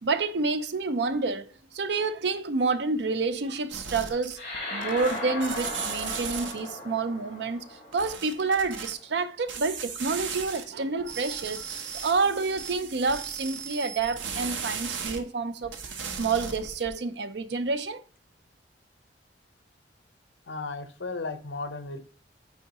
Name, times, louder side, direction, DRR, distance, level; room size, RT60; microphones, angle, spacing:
voice 1, 0.0-4.4 4.7-15.7 16.1-18.0, right 4 dB, 65° right, 0.5 m, -29 dB
sound 1, 3.7-4.6 4.8-6.7 7.9-8.9 9.5-10.6 11.0-15.2 15.6-16.9, right 6 dB, 90° right, 0.9 m, -36 dB
sound 2, 4.3-9.1, left 1 dB, 25° left, 3.4 m, -37 dB
voice 2, 20.5-22.0, left 3 dB, 80° left, 0.8 m, -35 dB
9.0 x 3.7 x 2.9 m
head